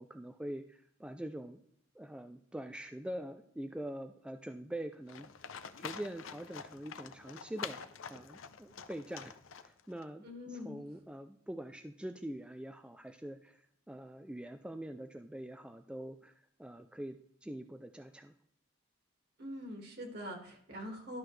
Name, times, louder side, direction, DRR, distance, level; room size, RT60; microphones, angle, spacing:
voice 1, 0.0-1.6 2.0-5.3 5.8-7.8 8.1-9.4 9.6-10.2 10.5-18.3, right 1 dB, 5° right, 7 dB, 0.3 m, -44 dB
Livestock farm animals working animals, 5.1-10.0, left 6 dB, 75° left, 0.6 m, -47 dB
voice 2, 10.2-10.8 19.4-21.2, left 1 dB, 55° right, 2 dB, 2.1 m, -43 dB
12.0 x 6.1 x 3.2 m, 0.69 s
head